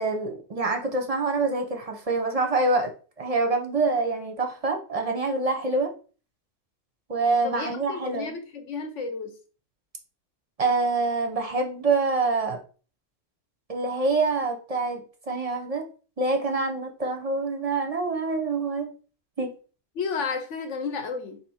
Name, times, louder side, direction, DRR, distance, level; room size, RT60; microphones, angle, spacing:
voice 1, 0.0-2.9 3.2-5.9 7.1-8.3 10.6-12.6 13.7-15.0 15.3-15.9 16.2-18.9 19.4-19.5, right 3 dB, 35° right, 0.7 m, -26 dB
voice 2, 7.4-9.4 19.9-21.4, left 4 dB, 75° left, 1.2 m, -32 dB
4.2 x 2.8 x 4.2 m
omnidirectional pair, 1.3 m